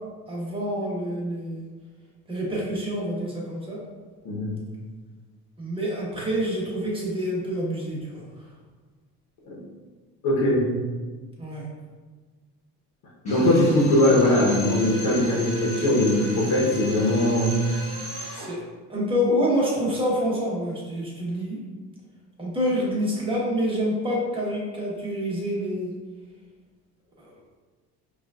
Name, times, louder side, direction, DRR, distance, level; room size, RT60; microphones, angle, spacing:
voice 1, 0.3-1.7 2.3-3.8 5.6-8.2 11.4-11.6 18.3-18.6 18.9-21.6 22.4-25.9 27.2-27.3, equal, 15° right, -5 dB, 1.1 m, -27 dB
voice 2, 4.2-4.6 10.2-10.7 13.2-17.5, left 1 dB, 60° left, -3 dB, 1.0 m, -20 dB
Drill, 13.2-18.5, equal, 20° left, 1.5 m, -36 dB
4.9 x 2.5 x 2.4 m, 1.4 s
cardioid pair, 115°, 36 cm